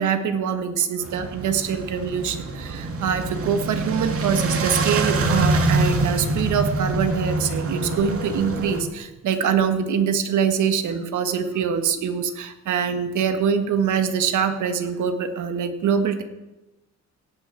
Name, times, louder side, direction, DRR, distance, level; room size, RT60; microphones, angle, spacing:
voice 1, 0.0-16.2, right 7 dB, 75° right, 8 dB, 1.6 m, -24 dB
sound 1, 1.0-8.8, right 2 dB, 50° right, 2.2 m, -25 dB
16.5 x 6.0 x 8.8 m, 1.0 s
cardioid pair, 90°, 30 cm